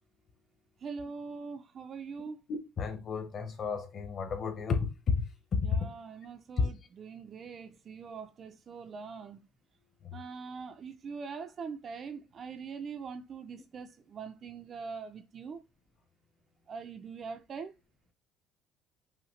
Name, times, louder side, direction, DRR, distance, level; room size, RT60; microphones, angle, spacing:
voice 1, 0.8-2.4 5.6-9.4 10.1-15.6 16.7-17.7, right 5 dB, 30° right, 0.4 m, -43 dB
voice 2, 2.5-5.2 5.5-5.9 6.6-6.7 10.0-10.2, left 5 dB, 35° left, 0.9 m, -31 dB
5.6 x 2.7 x 3.1 m
cardioid pair, 165°, 0 cm